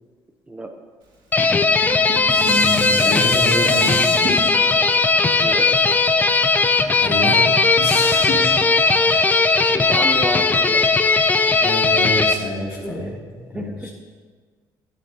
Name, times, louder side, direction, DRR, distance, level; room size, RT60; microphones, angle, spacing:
sound 1, 1.3-12.3, left 3 dB, 20° left, 0.4 m, -17 dB
Dishes pots and pans, 1.7-7.0 7.5-7.6, right 2 dB, 60° right, 2.2 m, -31 dB
voice 1, 2.4-4.1 7.0-7.4 7.8-8.5 9.0-9.4 11.6-13.1 13.5-13.7, left 2 dB, 70° left, -3 dB, 2.6 m, -26 dB
voice 2, 5.4-5.7 9.7-10.8 12.8-13.1 13.5-13.9, right 1 dB, 15° right, 4 dB, 0.7 m, -30 dB
12.0 x 8.8 x 2.8 m, 1.5 s
cardioid pair, 130°, 9 cm